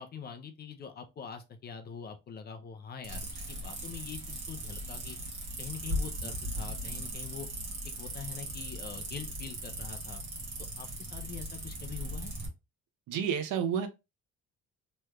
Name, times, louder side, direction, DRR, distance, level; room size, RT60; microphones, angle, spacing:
voice 1, 0.0-5.2 5.6-7.5 8.0-10.2 10.8-12.3, left 7 dB, 30° left, 0.4 m, -44 dB
sound 1, 3.0-12.5, right 1 dB, 40° right, 1.3 m, -38 dB
voice 2, 13.1-13.9, right 8 dB, 75° right, 0.8 m, -30 dB
3.2 x 3.1 x 2.2 m
cardioid pair, 145°, 32 cm